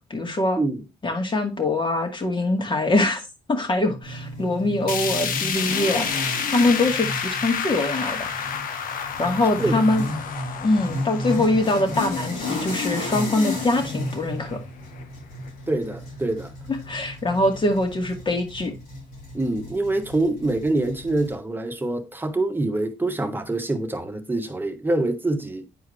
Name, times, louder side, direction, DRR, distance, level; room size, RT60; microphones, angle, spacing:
voice 1, 0.1-0.6 1.0-3.2 3.5-8.3 9.2-10.1 10.6-14.6 16.9-18.7, left 2 dB, 30° left, 2.3 m, -23 dB
sound 1, 4.0-21.3, left 2 dB, 80° left, 4.1 m, -33 dB
sound 2, 4.9-15.0 15.4-15.5 15.9-16.0 16.9-17.0, left 6 dB, 65° left, 1.2 m, -31 dB
voice 2, 15.7-16.5 19.3-25.7, right 2 dB, 15° right, 1.5 m, -25 dB
9.5 x 4.6 x 3.3 m
supercardioid pair, 75°, 15 cm